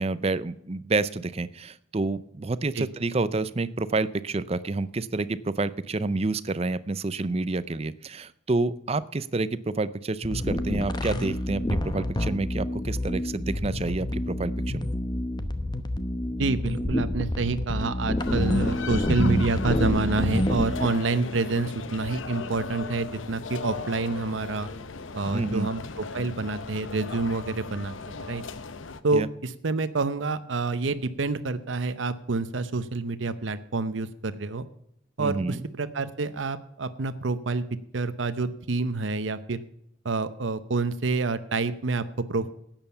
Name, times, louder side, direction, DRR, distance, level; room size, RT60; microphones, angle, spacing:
voice 1, 0.0-14.9 25.3-25.7 29.1-29.3 35.2-35.6, right 3 dB, 30° right, 16 dB, 0.5 m, -29 dB
sound 1, 10.2-20.9, left 1 dB, 20° left, 0.9 m, -28 dB
voice 2, 16.4-24.7 25.1-28.4 29.0-34.6 35.2-37.6 37.9-39.6 40.0-42.0 42.3-42.5, right 3 dB, 75° right, 12 dB, 0.8 m, -28 dB
sound 2, 18.2-29.0, left 4 dB, 85° left, 0.8 m, -37 dB
12.5 x 8.9 x 5.7 m, 0.74 s
head